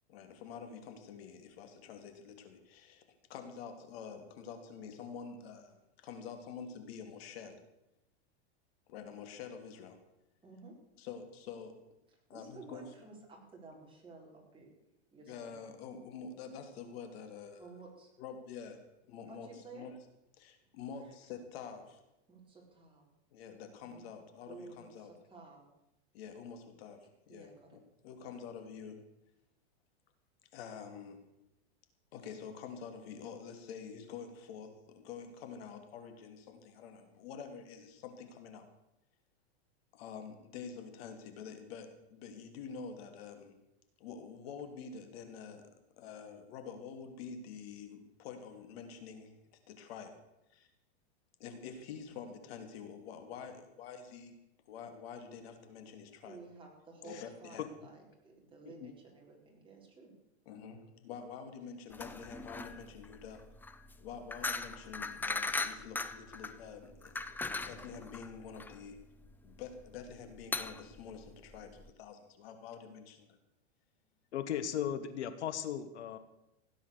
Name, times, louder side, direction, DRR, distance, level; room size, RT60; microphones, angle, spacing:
voice 1, 0.1-3.0 3.3-7.6 8.9-10.0 11.0-11.7 12.3-12.8 15.3-17.7 18.2-18.8 19.1-19.5 19.7-19.9 20.4-22.0 23.3-25.1 26.1-29.0 30.5-31.2 32.1-38.7 39.9-43.5 44.0-45.6 46.0-49.3 49.7-50.1 50.5-50.7 51.4-54.3 54.7-56.4 57.0-57.7 60.5-63.4 64.0-69.0 69.4-73.4, left 6 dB, 60° left, 6 dB, 3.0 m, -47 dB
voice 2, 10.4-10.7 12.1-14.7 15.1-15.7 17.6-18.1 19.3-19.9 21.0-21.1 22.3-23.0 23.8-24.1 24.4-25.6 27.3-27.8 28.2-28.4 56.2-60.1, right 3 dB, 15° right, -1 dB, 4.5 m, -53 dB
sound 1, 61.9-71.9, left 3 dB, 5° left, 0.5 m, -39 dB
voice 3, 74.3-76.2, left 9 dB, 85° left, 12 dB, 1.4 m, -36 dB
16.5 x 9.9 x 6.8 m, 0.88 s
supercardioid pair, 135°, 33 cm